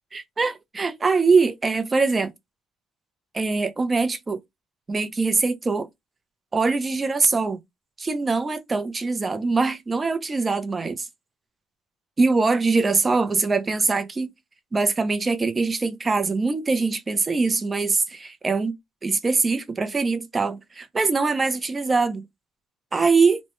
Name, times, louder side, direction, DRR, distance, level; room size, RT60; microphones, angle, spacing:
voice 1, 0.1-2.3 3.3-4.4 4.9-5.9 6.5-7.6 8.0-11.1 12.2-14.3 14.7-18.8 19.0-22.3 22.9-23.4, right 4 dB, 25° right, 0.6 m, -23 dB
3.1 x 2.2 x 3.0 m
cardioid pair, 115°, 0 cm